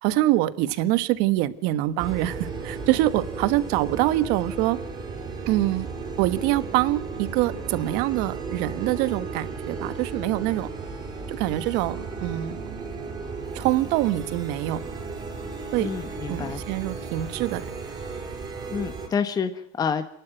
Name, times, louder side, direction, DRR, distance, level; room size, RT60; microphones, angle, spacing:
voice 1, 0.0-4.8 5.5-5.9 6.2-10.7 11.3-12.8 13.5-14.8 15.7-15.9 16.3-17.6, right 16 dB, 65° right, 14 dB, 1.3 m, -25 dB
sound 1, 2.0-19.1, right 4 dB, 20° right, 5.8 m, -35 dB
voice 2, 15.8-16.6 18.7-20.0, left 6 dB, 20° left, 9 dB, 1.1 m, -28 dB
28.0 x 12.0 x 9.1 m, 0.74 s
cardioid pair, 155°, 18 cm